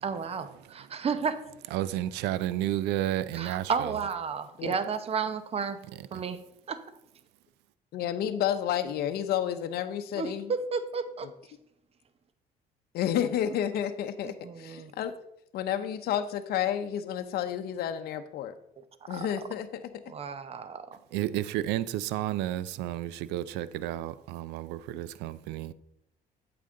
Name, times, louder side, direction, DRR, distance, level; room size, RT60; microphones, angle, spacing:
voice 1, 0.0-1.4 3.3-5.8 6.1-6.4 6.7-6.8 10.2-11.3 14.2-14.9 19.1-19.3 20.1-20.9, right 6 dB, 35° right, 0.8 m, -32 dB
voice 2, 1.7-3.9 21.1-25.7, right 13 dB, 85° right, 0.4 m, -31 dB
voice 3, 7.9-10.5 11.2-11.3 12.9-15.1 15.5-18.5 19.1-19.9, left 10 dB, 70° left, 0.7 m, -30 dB
8.5 x 6.8 x 3.8 m
cardioid pair, 110°, 17 cm